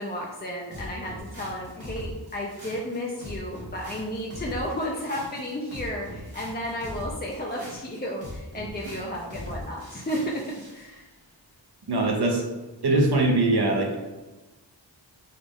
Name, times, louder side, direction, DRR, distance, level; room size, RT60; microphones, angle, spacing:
voice 1, 0.0-10.4 10.7-11.1, equal, 25° left, -2 dB, 0.4 m, -33 dB
sound 1, 0.7-10.8, equal, 75° right, 1.3 m, -41 dB
voice 2, 11.9-12.4 12.8-14.0, right 2 dB, 60° right, 1 dB, 0.7 m, -22 dB
4.1 x 2.3 x 3.4 m, 1.2 s
wide cardioid pair, 70°, 45 cm